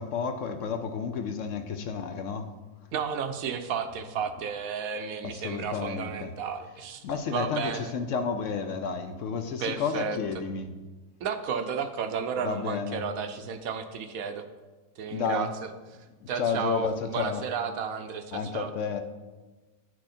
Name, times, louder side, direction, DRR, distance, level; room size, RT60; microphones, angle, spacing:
voice 1, 0.0-2.5 5.2-6.3 7.0-10.7 12.4-13.0 15.1-15.5 16.2-17.4 18.3-19.0, left 5 dB, 65° left, 7 dB, 0.9 m, -31 dB
voice 2, 2.9-7.9 9.6-10.4 11.2-14.5 15.0-16.0 16.3-18.7, right 6 dB, 70° right, 8 dB, 1.1 m, -33 dB
9.9 x 6.3 x 4.2 m, 1.3 s
omnidirectional pair, 1.6 m